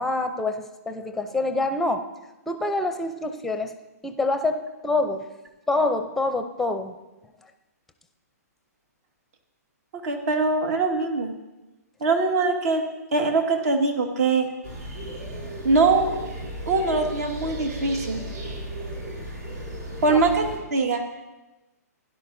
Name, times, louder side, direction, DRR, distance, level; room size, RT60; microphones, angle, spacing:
voice 1, 0.0-2.1 2.5-3.7 4.0-5.3 5.7-7.0 20.1-20.2, left 2 dB, 5° left, 8 dB, 0.6 m, -26 dB
voice 2, 10.0-11.3 12.0-12.8 13.1-14.5 15.6-16.2 16.7-18.2 20.0-21.0, right 3 dB, 65° right, 4 dB, 1.8 m, -22 dB
sound 1, 14.6-20.6, right 1 dB, 80° right, 4.2 m, -35 dB
16.5 x 11.0 x 2.7 m, 1.1 s
hypercardioid pair, 145°, 9 cm